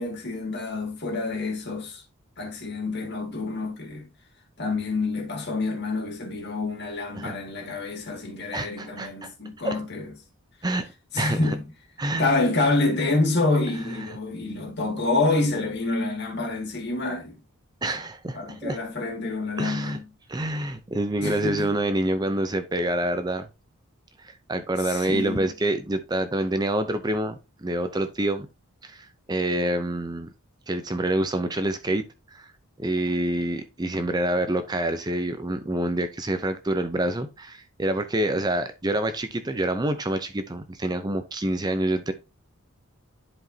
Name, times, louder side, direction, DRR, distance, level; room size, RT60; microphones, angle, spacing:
voice 1, 0.0-2.0 2.4-4.1 4.6-10.1 11.1-11.6 12.2-17.4 18.3-20.1 21.2-21.7 24.8-25.5, left 2 dB, 50° left, 2.1 m, -27 dB
voice 2, 8.5-9.3 9.6-9.8 10.6-10.9 11.2-11.5 12.0-12.2 14.0-14.2 17.8-18.8 19.6-20.0 20.3-23.5 24.2-28.5 28.8-30.3 30.7-32.5 32.8-42.1, right 1 dB, 20° right, 0.5 m, -27 dB
11.0 x 4.9 x 2.7 m
head